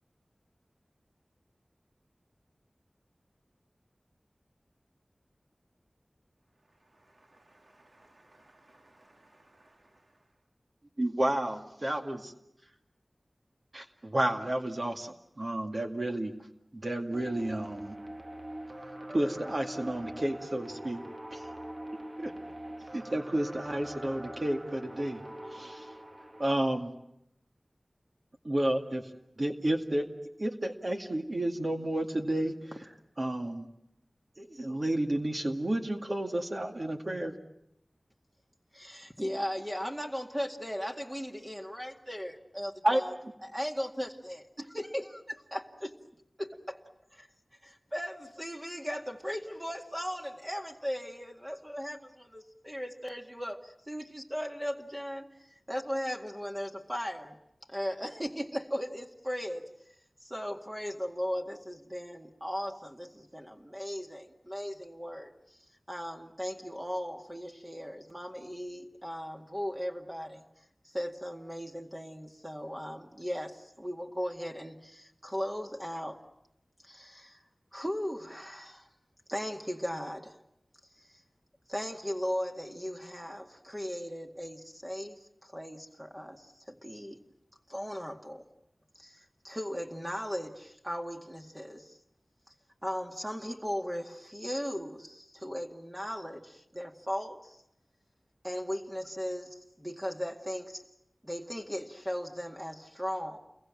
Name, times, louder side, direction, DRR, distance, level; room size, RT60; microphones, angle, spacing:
voice 1, 6.5-10.4, right 1 dB, 70° right, 2.2 m, -63 dB
voice 2, 11.0-12.3 13.7-16.3 16.7-18.0 19.1-21.0 21.3-21.5 21.9-22.3 22.9-25.2 25.5-25.9 26.4-26.9 28.4-29.1 29.4-30.0 30.4-33.7 34.4-37.3 42.8-43.0, right 1 dB, 50° right, 2.2 m, -31 dB
sound 1, 17.1-26.5, right 1 dB, 35° right, 1.5 m, -43 dB
voice 3, 38.7-43.1 43.4-45.9 46.4-46.8 47.1-47.3 47.6-57.4 57.7-59.7 60.2-65.6 65.9-70.5 70.8-76.2 76.8-77.4 77.7-78.9 79.3-80.4 81.0-81.2 81.7-87.2 87.7-88.5 89.0-92.0 92.5-92.6 92.8-97.6 98.4-100.8 101.2-103.4, equal, 15° right, 2.0 m, -37 dB
29.5 x 22.5 x 7.6 m
wide cardioid pair, 50°, 0 cm